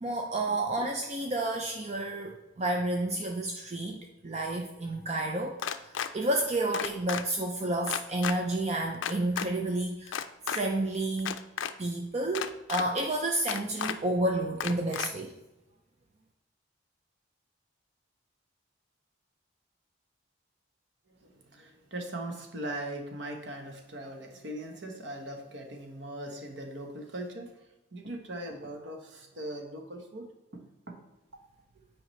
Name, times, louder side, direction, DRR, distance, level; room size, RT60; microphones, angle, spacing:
voice 1, 0.0-11.4 11.8-15.3, right 1 dB, 35° right, 2 dB, 0.5 m, -31 dB
sound 1, 5.6-6.1 6.7-7.2 7.9-8.3 9.0-9.5 10.1-10.6 11.2-11.7 12.3-12.8 13.5-13.9 14.6-15.1, left 8 dB, 75° left, 0.4 m, -32 dB
voice 2, 21.2-27.6 27.9-30.3 30.5-31.0, right 1 dB, 65° right, 3 dB, 1.2 m, -40 dB
9.1 x 4.8 x 3.2 m, 0.99 s
head